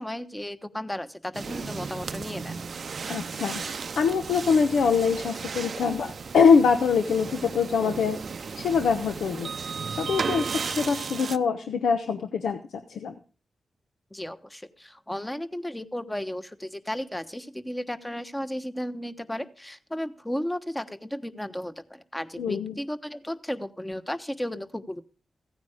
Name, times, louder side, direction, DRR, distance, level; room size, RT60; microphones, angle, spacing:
voice 1, 0.0-2.6 14.1-25.0, left 1 dB, 10° left, 10 dB, 1.2 m, -34 dB
sound 1, 1.3-11.4, right 5 dB, 65° right, 0.6 m, -35 dB
voice 2, 3.1-8.2 8.5-9.5 10.0-12.6 12.9-13.1 22.4-22.8, left 5 dB, 90° left, 8 dB, 0.9 m, -24 dB
15.5 x 9.2 x 5.0 m, 0.38 s
cardioid pair, 60°, 0 cm